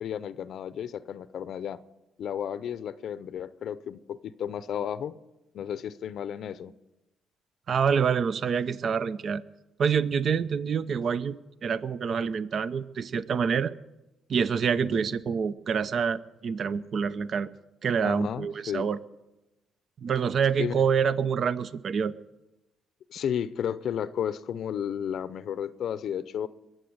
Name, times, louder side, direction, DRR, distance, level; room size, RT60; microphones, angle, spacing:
voice 1, 0.0-1.8 2.2-5.1 5.5-6.7 14.8-15.1 18.0-18.9 20.6-20.8 23.1-26.5, left 9 dB, 70° left, 15 dB, 0.6 m, -33 dB
voice 2, 7.7-9.4 9.8-11.4 11.6-13.7 14.3-17.5 17.8-19.0 20.0-22.2, right 6 dB, 55° right, 16 dB, 0.6 m, -26 dB
22.0 x 7.7 x 7.9 m, 0.99 s
cardioid pair, 90°, 0 cm